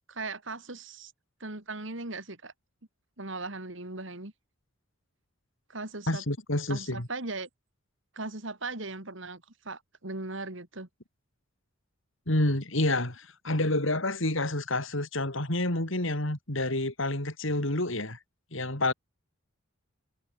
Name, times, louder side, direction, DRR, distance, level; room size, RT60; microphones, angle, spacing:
voice 1, 0.1-1.1 1.4-2.5 3.2-4.3 5.7-6.2 6.7-7.5 8.1-10.9, right 3 dB, 65° right, 2.8 m, -38 dB
voice 2, 6.1-7.1 12.3-18.2 18.5-18.9, left 1 dB, 70° left, 4.1 m, -28 dB
head